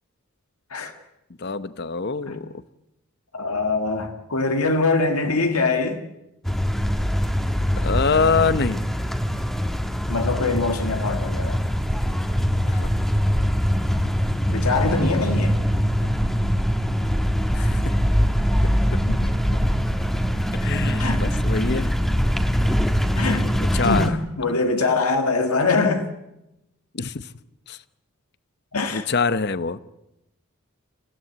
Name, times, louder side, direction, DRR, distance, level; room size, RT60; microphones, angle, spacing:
voice 1, 1.4-2.5 7.8-8.8 12.7-12.9 17.5-18.0 18.9-19.0 20.6-21.9 23.6-24.2 26.9-27.3 27.7-27.8 28.9-29.8, left 5 dB, 50° left, 0.9 m, -24 dB
voice 2, 3.3-6.0 10.1-11.6 14.5-15.6 19.1-19.3 21.0-21.3 23.2-23.5 23.8-26.1 28.7-29.1, left 3 dB, 90° left, 2.0 m, -23 dB
sound 1, 6.4-24.1, equal, ahead, 1.6 m, -22 dB
26.5 x 16.5 x 8.1 m
head